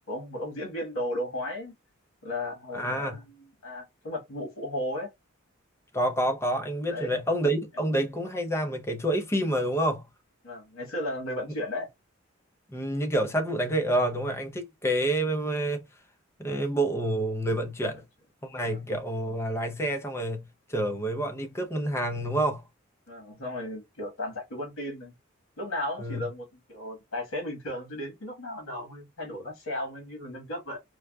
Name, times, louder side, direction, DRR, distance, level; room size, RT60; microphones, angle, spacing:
voice 1, 0.1-1.7 2.2-5.1 6.9-7.1 10.4-11.9 18.7-18.8 23.1-25.1 25.6-30.8, left 1 dB, 80° left, 1.4 m, -35 dB
voice 2, 2.7-3.2 5.9-10.0 12.7-15.8 16.4-18.0 18.4-20.4 20.7-22.6 26.0-26.2, right 1 dB, 10° left, 0.5 m, -28 dB
4.6 x 2.1 x 2.3 m
head